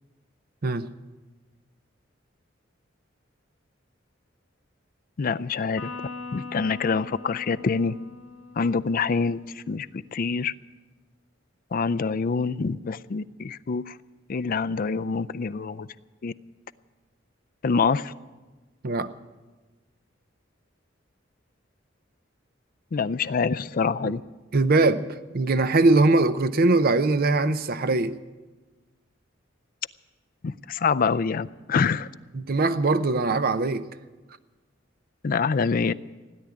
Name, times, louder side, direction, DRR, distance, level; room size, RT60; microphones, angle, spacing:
voice 1, 5.2-5.9 6.3-8.0 8.6-10.5 11.7-14.0 14.3-15.9 16.2-16.3 17.6-18.1 22.9-24.2 30.4-32.1 35.2-35.9, left 5 dB, 50° left, 14 dB, 0.4 m, -26 dB
Electric guitar, 5.8-9.3, left 4 dB, 75° left, 1.8 m, -41 dB
voice 2, 24.5-28.2 32.3-33.9, right 3 dB, 50° right, 12 dB, 0.7 m, -21 dB
16.5 x 10.0 x 8.4 m, 1.2 s
head